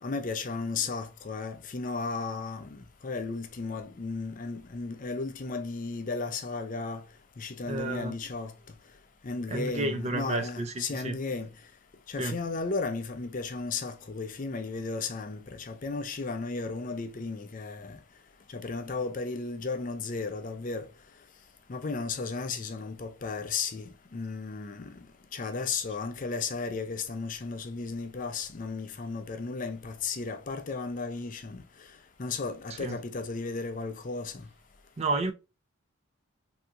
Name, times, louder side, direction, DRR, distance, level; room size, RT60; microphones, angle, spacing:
voice 1, 0.0-7.0 7.4-8.5 9.2-11.5 12.1-18.0 18.5-20.9 21.7-25.1 25.3-31.6 32.2-34.5, left 4 dB, 40° left, 0.4 m, -34 dB
voice 2, 7.7-8.1 9.5-11.2 12.2-12.4 32.8-33.0 35.0-35.3, right 2 dB, 30° right, 0.3 m, -31 dB
3.5 x 2.7 x 2.5 m
head